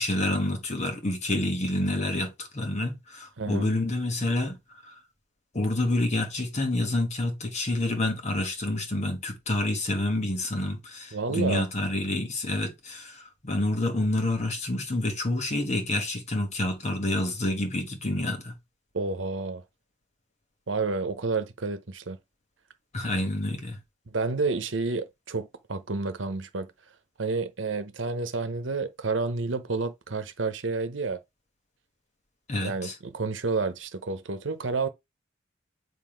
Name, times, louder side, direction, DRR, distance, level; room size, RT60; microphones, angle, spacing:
voice 1, 0.0-5.0 5.5-18.5 22.9-23.8 32.5-32.9, left 1 dB, 40° left, 1.4 m, -28 dB
voice 2, 3.4-3.7 11.1-11.6 18.9-19.6 20.7-22.2 24.1-26.7 27.2-31.2 32.6-34.9, right 3 dB, 90° right, 0.9 m, -30 dB
7.6 x 2.7 x 5.1 m
head